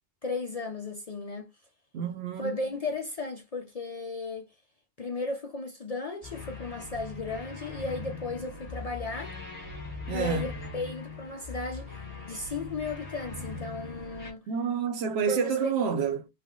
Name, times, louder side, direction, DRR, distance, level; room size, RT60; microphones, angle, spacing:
voice 1, 0.2-1.5 2.4-4.5 5.0-9.3 10.1-11.9 12.3-14.4 15.3-15.9, left 3 dB, 50° left, 0.5 m, -35 dB
voice 2, 1.9-2.7 10.1-10.5 14.5-16.3, right 6 dB, 70° right, 0.9 m, -29 dB
sound 1, 6.2-14.3, left 3 dB, 15° left, 1.1 m, -40 dB
3.3 x 2.1 x 3.6 m
omnidirectional pair, 1.1 m